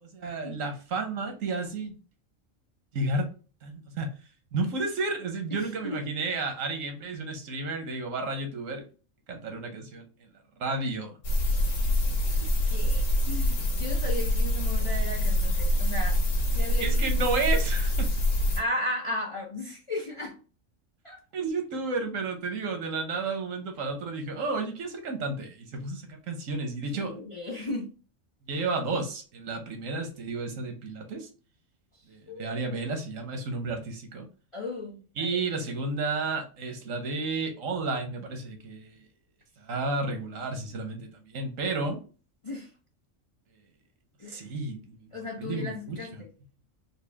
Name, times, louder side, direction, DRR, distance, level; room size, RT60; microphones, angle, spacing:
voice 1, 0.0-2.0 2.9-3.3 3.6-4.1 4.5-8.8 9.3-10.3 10.6-11.2 16.8-18.1 21.3-27.1 28.5-31.3 32.1-34.3 35.2-39.0 39.6-42.0 44.3-45.1 45.4-46.0, right 3 dB, 80° right, 5 dB, 1.3 m, -32 dB
voice 2, 5.5-6.0 12.4-16.2 16.5-17.0 18.6-20.4 21.0-21.2 26.9-27.9 32.3-32.6 34.5-35.4 42.4-42.7 44.2-44.5 45.1-46.3, left 2 dB, 40° left, 0 dB, 0.4 m, -35 dB
sound 1, 11.2-18.6, left 1 dB, 85° left, 1.4 m, -25 dB
4.2 x 2.3 x 3.2 m, 0.36 s
omnidirectional pair, 1.3 m